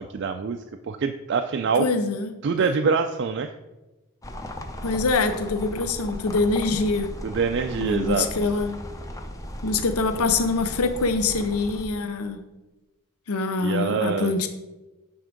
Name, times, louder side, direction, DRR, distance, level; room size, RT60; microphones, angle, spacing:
voice 1, 0.0-1.9 2.4-3.5 7.2-8.5 13.6-14.3, right 5 dB, 50° right, 6 dB, 0.3 m, -25 dB
voice 2, 1.8-2.4 4.8-7.1 7.8-8.7 9.6-12.4 13.3-14.5, left 3 dB, 80° left, 8 dB, 0.6 m, -24 dB
sound 1, 4.2-11.9, equal, 15° left, 0.5 m, -36 dB
9.2 x 3.5 x 5.1 m, 1.1 s
head